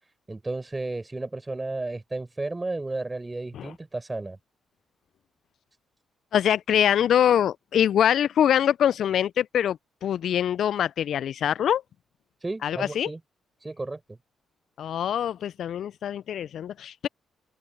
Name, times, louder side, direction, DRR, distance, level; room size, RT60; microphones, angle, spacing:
voice 1, 0.3-4.4 12.4-13.2 13.6-14.2, right 2 dB, 25° right, 4.5 m, -33 dB
voice 2, 6.3-11.8 12.6-13.1 14.8-17.1, left 9 dB, 70° left, 0.3 m, -24 dB
open air
supercardioid pair, 55°, 0 cm